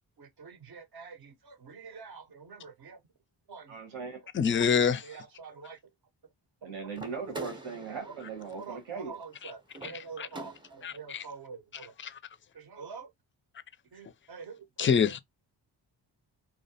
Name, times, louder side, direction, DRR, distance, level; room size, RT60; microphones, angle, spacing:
voice 1, 0.2-3.0 3.5-3.7 5.0-5.8 6.6-6.7 7.3-7.4 8.0-8.1 8.6-11.9 12.5-13.1 13.9-14.9, right 5 dB, 50° right, 0.7 m, -46 dB
voice 2, 3.7-4.2 6.6-9.1, right 5 dB, 80° right, 1.0 m, -39 dB
voice 3, 4.3-5.2 9.4-9.5 9.8-10.3 10.8-11.3 11.7-12.2 14.8-15.2, left 6 dB, 30° left, 0.4 m, -27 dB
sound 1, 6.9-11.0, right 2 dB, 10° right, 0.6 m, -45 dB
2.4 x 2.1 x 2.6 m
cardioid pair, 45°, 48 cm